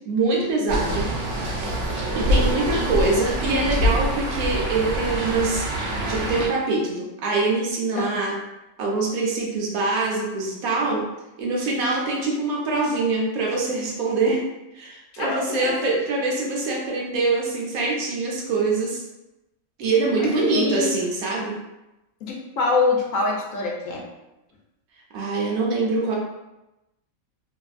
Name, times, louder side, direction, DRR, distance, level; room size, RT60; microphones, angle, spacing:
voice 1, 0.1-1.1 2.1-5.6 6.1-8.3 8.8-11.1 11.4-14.4 14.7-19.0 19.8-21.5 25.1-26.1, right 3 dB, 90° right, -2 dB, 1.1 m, -24 dB
sound 1, 0.7-6.5, equal, 65° right, 1.0 m, -25 dB
voice 2, 15.1-15.9 20.2-20.9 22.2-24.0, left 3 dB, 75° left, -1 dB, 0.9 m, -25 dB
2.7 x 2.5 x 2.3 m, 0.96 s
omnidirectional pair, 1.5 m